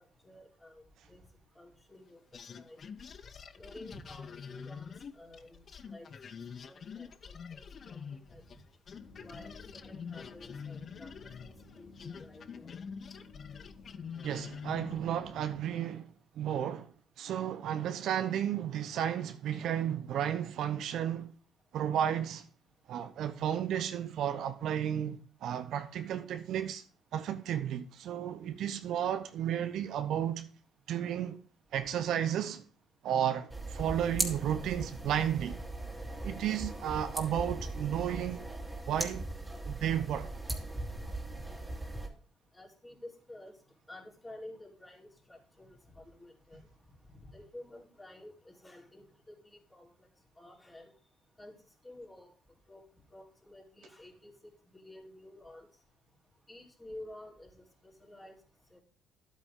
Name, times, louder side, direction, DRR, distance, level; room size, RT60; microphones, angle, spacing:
voice 1, 0.2-1.2 1.6-2.2 2.5-2.8 3.6-6.4 6.7-8.6 9.2-12.8 41.9-42.1 42.5-43.5 43.9-46.7 47.1-49.9 50.4-50.9 51.4-51.6 51.8-52.3 52.7-52.8 53.1-54.3 54.7-55.7 56.5-58.3 58.7-58.8, left 1 dB, 20° left, 3.9 m, -51 dB
sound 1, 2.3-8.6 8.9-15.1, left 6 dB, 45° left, 0.7 m, -46 dB
sound 2, 8.9-15.6, left 4 dB, 70° left, 3.2 m, -54 dB
voice 2, 14.2-16.0 16.3-16.9 17.2-21.3 21.7-22.5 22.9-26.8 27.1-30.5 30.9-31.4 31.7-32.6 33.0-35.6 36.2-38.4 38.9-39.3 39.6-40.3, right 10 dB, 65° right, 0.8 m, -33 dB
sound 3, 33.5-42.1, right 2 dB, 15° right, 2.7 m, -39 dB
11.5 x 8.3 x 3.7 m
hypercardioid pair, 60°, 0 cm